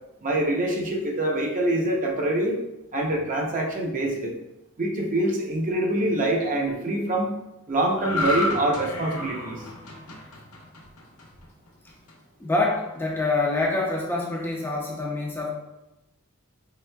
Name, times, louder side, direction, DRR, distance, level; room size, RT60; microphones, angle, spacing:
voice 1, 0.2-2.6 2.9-4.3 4.8-7.3 7.7-9.6, right 1 dB, 35° right, 0 dB, 0.7 m, -25 dB
sound 1, 8.0-11.5 11.9-12.1, left 1 dB, 70° left, 0.8 m, -30 dB
voice 2, 12.4-15.5, left 2 dB, 10° left, -2 dB, 0.4 m, -26 dB
4.8 x 3.5 x 2.2 m, 0.95 s
head